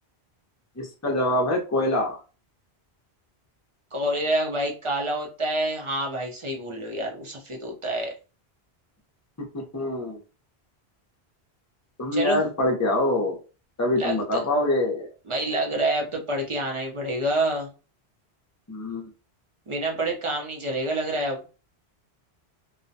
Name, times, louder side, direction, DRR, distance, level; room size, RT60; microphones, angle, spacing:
voice 1, 0.8-2.2 9.5-10.2 12.0-13.4 13.8-15.1 18.7-19.1, left 1 dB, 20° left, 1 dB, 0.5 m, -25 dB
voice 2, 3.9-8.1 12.1-12.4 14.0-14.4 15.3-17.7 19.7-21.5, right 1 dB, 35° right, 0 dB, 0.6 m, -27 dB
2.4 x 2.1 x 2.6 m, 0.33 s
omnidirectional pair, 1.1 m